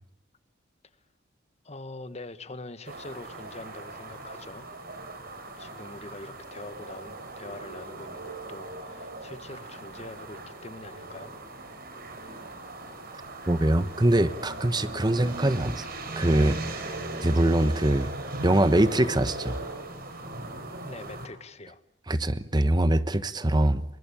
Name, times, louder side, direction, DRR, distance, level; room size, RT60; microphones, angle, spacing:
voice 1, 1.6-4.7 5.6-11.3 20.8-21.8, left 2 dB, 35° left, 1.6 m, -43 dB
sound 1, 2.8-21.3, right 2 dB, 50° right, 5.5 m, -39 dB
voice 2, 13.5-15.9 16.2-16.6 17.2-18.1 18.4-19.6 22.1-23.8, right 1 dB, 20° right, 1.1 m, -23 dB
28.0 x 24.0 x 8.5 m
head